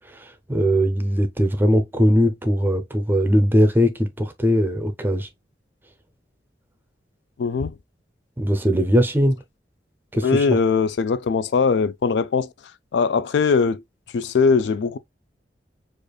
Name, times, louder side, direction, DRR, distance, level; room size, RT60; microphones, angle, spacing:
voice 1, 0.1-5.3 8.4-9.4 10.1-10.6, equal, 10° right, 0.6 m, -20 dB
voice 2, 7.4-7.7 10.2-12.5 12.9-13.8 14.1-15.0, left 5 dB, 80° left, 0.4 m, -20 dB
4.9 x 2.5 x 2.3 m
head